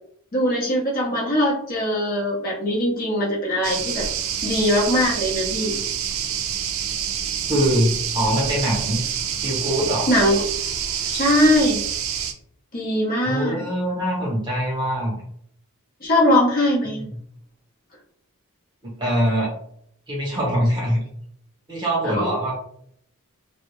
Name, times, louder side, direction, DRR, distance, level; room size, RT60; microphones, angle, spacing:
voice 1, 0.3-4.1 4.4-5.7 10.1-10.4 11.1-11.8 12.7-13.6 16.0-17.1 22.0-22.3, left 1 dB, 40° left, -3 dB, 0.7 m, -21 dB
sound 1, 3.6-12.3, right 8 dB, 65° right, 0.3 m, -27 dB
voice 2, 7.5-9.0 9.4-10.1 13.2-15.2 17.0-17.1 18.8-19.5 20.1-21.0 21.7-22.5, equal, 20° right, -4 dB, 0.9 m, -23 dB
2.3 x 2.0 x 3.0 m, 0.65 s
head